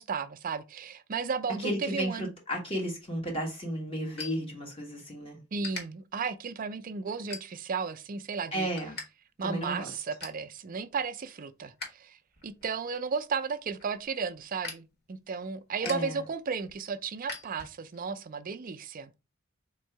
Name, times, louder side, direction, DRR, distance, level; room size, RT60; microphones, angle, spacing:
voice 1, 0.0-2.3 5.5-8.7 9.4-12.2 12.4-19.1, right 5 dB, 45° right, 0.4 m, -34 dB
voice 2, 1.6-5.4 8.5-9.0 9.4-9.9 15.8-16.2, equal, 30° left, 1.3 m, -33 dB
sound 1, 3.0-5.1 5.4-5.8 6.4-6.6 7.2-7.9 8.2-9.1 9.3-9.4 9.8-10.5 10.9-11.9 12.3-18.0, left 3 dB, 55° left, 1.6 m, -44 dB
3.8 x 2.7 x 4.4 m
head